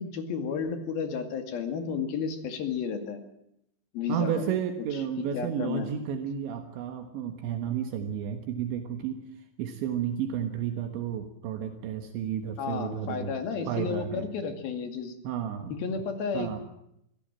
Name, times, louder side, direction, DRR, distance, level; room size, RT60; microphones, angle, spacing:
voice 1, 0.0-3.2 3.9-4.4 5.3-5.9 12.6-15.1 15.7-16.6, left 6 dB, 60° left, 6 dB, 3.7 m, -32 dB
voice 2, 4.1-9.2 9.6-13.4 13.7-14.3 15.2-15.8 16.3-16.6, right 8 dB, 75° right, 6 dB, 3.7 m, -32 dB
26.0 x 16.0 x 7.5 m, 0.78 s
omnidirectional pair, 5.4 m